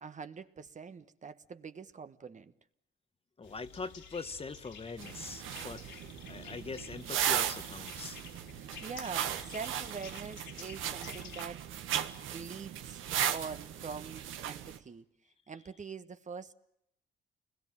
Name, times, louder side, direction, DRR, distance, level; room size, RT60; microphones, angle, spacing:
voice 1, 0.0-2.5 8.5-8.6 8.8-12.0 12.3-13.0 13.3-15.0 15.5-16.5, right 5 dB, 40° right, 1.4 m, -44 dB
sound 1, 3.4-11.4, left 6 dB, 70° left, 3.1 m, -51 dB
voice 2, 3.4-5.8 6.3-8.2, left 4 dB, 30° left, 1.3 m, -42 dB
sound 2, 5.0-14.8, right 10 dB, 85° right, 1.7 m, -37 dB
29.0 x 21.0 x 7.4 m
cardioid pair, 90°, 20 cm